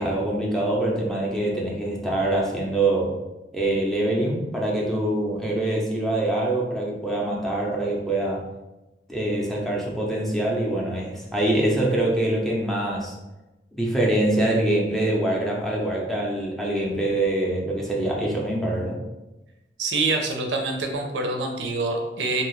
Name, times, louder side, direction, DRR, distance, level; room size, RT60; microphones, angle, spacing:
voice 1, 0.0-3.2 3.5-8.4 9.1-13.1 13.7-19.0, right 1 dB, ahead, -3 dB, 0.5 m, -24 dB
voice 2, 19.8-22.4, right 3 dB, 75° right, 2 dB, 0.5 m, -26 dB
2.7 x 2.3 x 3.0 m, 1.0 s
head